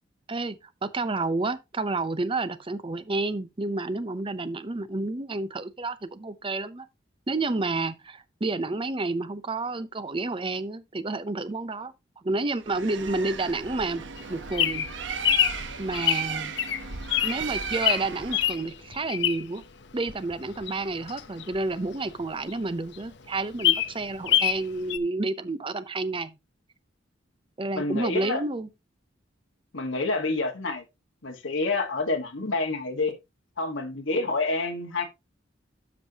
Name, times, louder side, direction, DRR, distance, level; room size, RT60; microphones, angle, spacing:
voice 1, 0.8-6.9 7.3-11.9 12.2-14.0 14.3-14.9 15.8-16.5 17.2-19.6 19.9-26.4 27.6-28.7, right 3 dB, 30° right, 0.6 m, -30 dB
Bird, 12.6-18.7, right 6 dB, 70° right, 0.9 m, -35 dB
Bird vocalization bird call bird song, 14.2-19.6 20.1-22.2 22.6-22.7 23.0-23.1 23.4-24.6 24.9-25.0, left 12 dB, 65° left, 0.7 m, -26 dB
voice 2, 27.7-28.4 29.7-30.8 31.2-33.1 33.6-35.0, left 3 dB, 80° left, 1.4 m, -28 dB
12.5 x 5.2 x 2.8 m
head